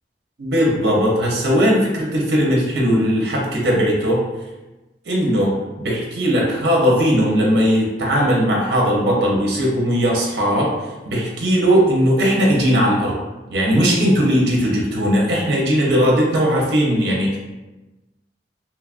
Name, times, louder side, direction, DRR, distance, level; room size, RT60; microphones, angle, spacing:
voice 1, 0.4-4.2 5.1-10.7 11.0-13.1 13.5-17.4, equal, 65° right, -2 dB, 0.6 m, -18 dB
2.9 x 2.3 x 2.4 m, 1.1 s
head